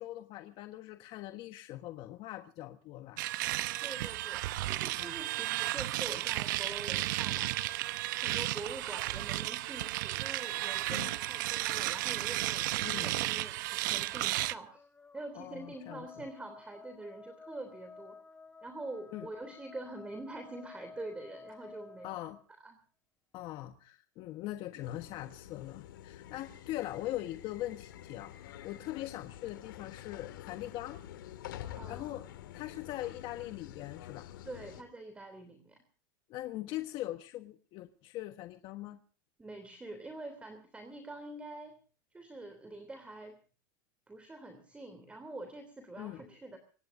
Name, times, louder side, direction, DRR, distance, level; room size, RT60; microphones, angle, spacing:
voice 1, 0.0-3.2 5.0-5.1 10.9-11.1 12.8-13.1 15.3-16.1 19.1-19.3 22.0-22.4 23.3-31.0 31.9-32.3 32.5-34.3 36.3-39.0 46.0-46.2, left 15 dB, 50° left, 7 dB, 1.4 m, -41 dB
sound 1, 3.2-14.5, right 17 dB, 75° right, 0.9 m, -33 dB
voice 2, 3.8-7.5 8.1-14.8 15.1-18.2 18.6-22.1 22.6-22.8 31.8-32.1 34.4-35.8 39.4-41.7 42.1-43.4 44.1-46.6, right 2 dB, 10° right, 7 dB, 3.1 m, -45 dB
sound 2, 14.1-22.4, left 4 dB, 15° left, 1.5 m, -53 dB
sound 3, 24.8-34.8, left 12 dB, 85° left, 2.2 m, -48 dB
26.0 x 18.0 x 2.7 m, 0.39 s
supercardioid pair, 120°, 11 cm